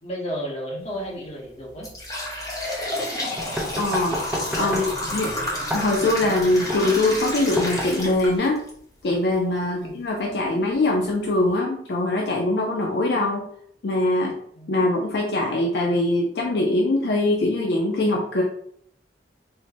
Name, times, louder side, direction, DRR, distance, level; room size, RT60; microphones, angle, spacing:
voice 1, 0.0-1.9 4.6-5.4 9.6-9.9 14.5-14.7, equal, 35° left, -4 dB, 1.1 m, -33 dB
sound 1, 0.9-1.1 1.6-8.7 9.1-9.2 10.1-10.2 10.7-10.8 11.2-11.5, left 1 dB, 20° left, 0.9 m, -30 dB
sound 2, 3.4-8.4, equal, 10° right, 0.5 m, -31 dB
voice 2, 3.8-4.8 5.1-5.3 5.7-8.6 9.0-13.4 13.8-14.3 14.7-18.4, left 2 dB, 65° left, 0 dB, 0.5 m, -22 dB
4.4 x 2.1 x 2.8 m, 0.65 s
head